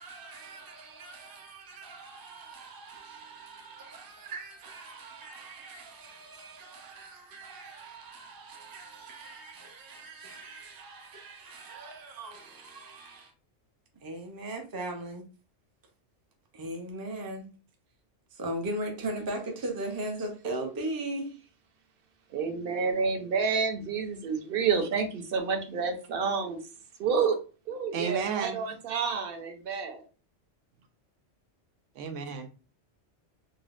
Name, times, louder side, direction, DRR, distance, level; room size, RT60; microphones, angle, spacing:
voice 1, 0.0-13.3 14.0-15.3 16.5-17.5 18.3-21.3, right 1 dB, 30° right, 0.4 m, -39 dB
voice 2, 22.3-26.6 27.0-27.4 27.7-30.0, right 5 dB, 60° right, 0.8 m, -29 dB
voice 3, 27.9-28.8 32.0-32.5, right 6 dB, 85° right, 0.9 m, -33 dB
4.0 x 2.0 x 2.4 m
omnidirectional pair, 1.2 m